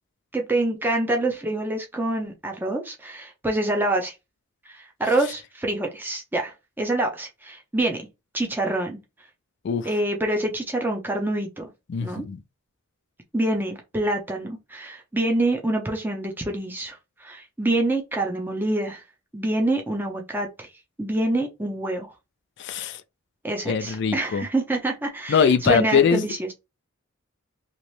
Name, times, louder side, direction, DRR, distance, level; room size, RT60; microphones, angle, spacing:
voice 1, 0.3-4.1 4.7-8.0 8.3-9.0 9.8-11.7 12.0-12.2 13.3-19.0 19.3-20.7 21.0-22.1 23.4-26.5, right 2 dB, 10° right, 0.6 m, -26 dB
voice 2, 11.9-12.4 22.6-23.0 23.7-24.4 25.3-26.2, left 6 dB, 55° left, 0.4 m, -22 dB
3.0 x 3.0 x 3.1 m
head